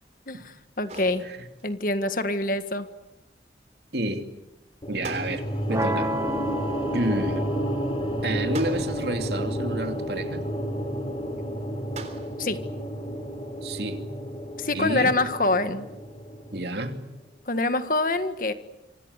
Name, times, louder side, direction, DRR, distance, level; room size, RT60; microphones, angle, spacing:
voice 1, 0.3-1.2 1.6-2.9 12.4-12.6 14.6-15.9 17.5-18.5, left 2 dB, 50° left, 9 dB, 1.7 m, -25 dB
sound 1, 0.9-1.8 5.0-5.9 8.5-9.3 11.9-12.6, right 3 dB, 40° right, 3.4 m, -42 dB
voice 2, 3.9-4.3 4.9-6.1 6.9-7.4 8.2-10.4 13.6-14.0 14.7-15.2 16.5-17.0, right 1 dB, 65° right, 6 dB, 2.7 m, -30 dB
sound 2, 4.8-17.1, equal, 30° left, 3.6 m, -31 dB
sound 3, 5.7-11.7, right 1 dB, 20° right, 1.6 m, -34 dB
26.5 x 26.0 x 8.3 m, 0.94 s
head